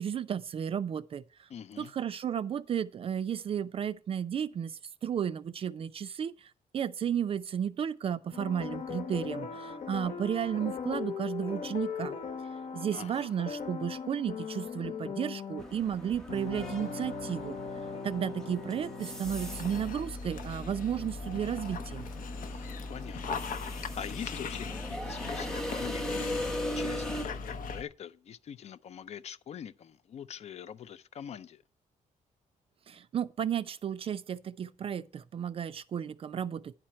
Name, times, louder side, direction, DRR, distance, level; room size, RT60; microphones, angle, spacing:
voice 1, 0.0-1.5 1.8-12.2 12.7-17.6 18.0-22.1 32.9-36.7, right 8 dB, 45° right, 0.4 m, -33 dB
voice 2, 1.5-1.9 12.9-13.3 22.5-31.6, left 8 dB, 50° left, 0.5 m, -44 dB
sound 1, 8.3-19.9, left 6 dB, 70° left, 1.1 m, -39 dB
sound 2, 15.6-27.2, equal, 5° left, 0.9 m, -40 dB
Dog, 19.2-27.8, left 4 dB, 85° left, 0.8 m, -39 dB
10.0 x 4.4 x 7.5 m
wide cardioid pair, 150°, 14 cm